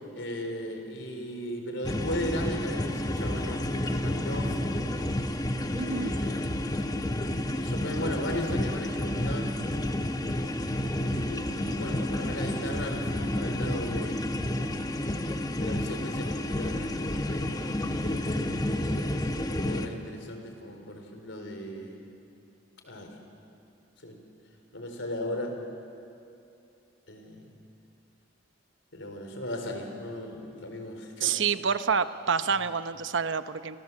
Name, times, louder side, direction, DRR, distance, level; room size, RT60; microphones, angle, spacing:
voice 1, 0.1-4.6 5.8-6.6 7.5-9.6 10.9-14.3 15.6-18.3 19.5-22.0 22.8-23.1 24.0-24.2 24.7-25.5 27.1-27.5 28.9-31.4 32.5-32.6, left 1 dB, 70° left, 4 dB, 4.4 m, -37 dB
sound 1, 1.8-19.9, left 1 dB, 20° left, 1.1 m, -30 dB
voice 2, 5.7-6.1 31.2-33.8, right 6 dB, 70° right, 12 dB, 0.9 m, -28 dB
29.5 x 25.5 x 7.5 m, 2.7 s
head